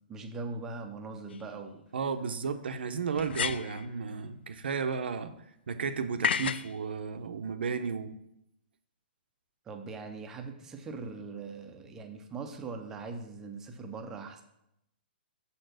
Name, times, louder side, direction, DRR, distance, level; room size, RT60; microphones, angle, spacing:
voice 1, 0.1-1.8 9.7-14.4, right 4 dB, 10° right, 4 dB, 0.5 m, -41 dB
sound 1, 1.3-1.4 3.2-3.9 6.2-6.7, left 7 dB, 85° left, 0.3 m, -31 dB
voice 2, 1.9-5.3 5.7-8.2, right 5 dB, 85° right, 8 dB, 0.8 m, -33 dB
6.7 x 4.4 x 6.5 m, 0.80 s
hypercardioid pair, 180°, 6 cm